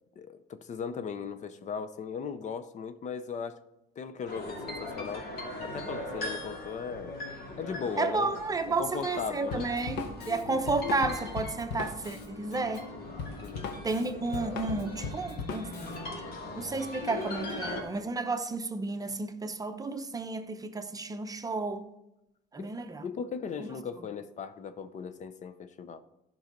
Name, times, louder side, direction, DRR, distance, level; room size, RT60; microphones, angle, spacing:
voice 1, 0.2-3.6 4.0-5.3 5.6-7.2 7.6-8.3 8.8-9.7 13.4-13.8 22.6-22.7 23.0-26.0, left 6 dB, 45° left, 0.6 m, -37 dB
sound 1, 4.3-17.8, left 2 dB, 65° left, 2.4 m, -40 dB
voice 2, 8.0-12.9 13.8-15.7 16.6-21.8 22.5-23.1, right 3 dB, 20° right, 0.7 m, -32 dB
Drum kit, 9.5-16.0, left 5 dB, 90° left, 1.0 m, -38 dB
11.5 x 5.4 x 5.2 m
cardioid pair, 110°, 17 cm